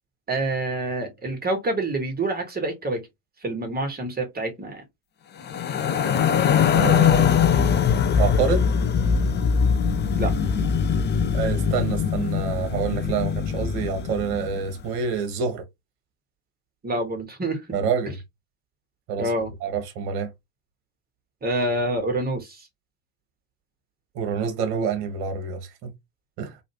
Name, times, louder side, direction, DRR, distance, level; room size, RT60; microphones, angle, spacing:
voice 1, 0.3-3.0 3.4-4.8 10.1-10.3 16.8-17.6 19.2-19.5 21.4-22.7, right 2 dB, 20° right, 1.6 m, -27 dB
sound 1, 5.4-14.7, left 7 dB, 25° left, 0.5 m, -22 dB
voice 2, 6.7-7.6 8.2-8.7 11.3-15.6 17.7-18.2 19.1-19.3 19.6-20.3 24.1-25.9 26.4-26.5, right 6 dB, 55° right, 1.1 m, -27 dB
3.1 x 2.6 x 2.9 m
hypercardioid pair, 70°, 46 cm